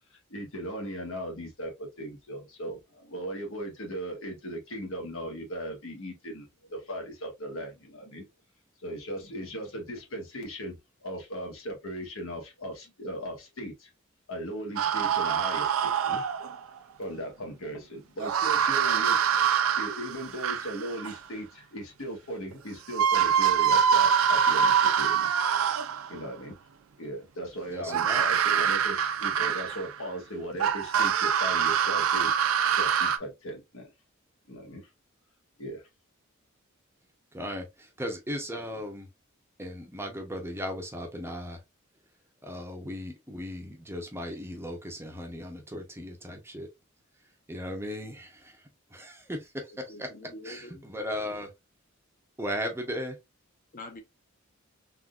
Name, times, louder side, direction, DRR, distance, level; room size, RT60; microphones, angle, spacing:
voice 1, 0.3-8.2 8.8-13.9 14.3-16.2 17.0-25.3 26.1-26.6 27.0-33.9 34.5-34.9 35.6-35.8, right 1 dB, 75° left, 1.3 m, -38 dB
sound 1, 14.8-16.6 18.2-21.2 22.5-22.6 22.9-26.1 27.9-30.0 30.6-33.2, right 8 dB, 85° right, 0.4 m, -25 dB
voice 2, 27.7-28.2 37.3-39.1 39.6-41.6 42.4-46.7 47.5-48.6 48.9-50.1 50.4-51.5 52.4-53.2, equal, 10° right, 0.6 m, -37 dB
voice 3, 49.7-50.9 53.7-54.0, left 2 dB, 45° left, 0.8 m, -45 dB
3.6 x 2.5 x 2.3 m
head